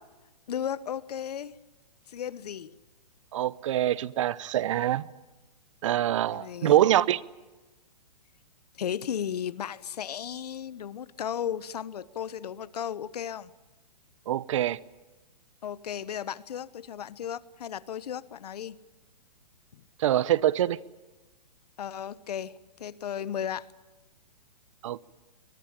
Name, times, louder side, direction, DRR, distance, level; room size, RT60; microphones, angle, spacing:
voice 1, 0.5-1.5 2.1-2.8 6.3-6.8 8.7-13.5 15.6-18.8 19.7-19.8 21.8-23.7, left 9 dB, 70° left, 18 dB, 1.1 m, -35 dB
voice 2, 3.3-5.1 5.8-7.2 14.3-14.8 20.0-20.8 24.8-25.0, right 12 dB, 45° right, 21 dB, 0.8 m, -24 dB
22.5 x 22.5 x 9.0 m, 1.1 s
hypercardioid pair, 155°, 21 cm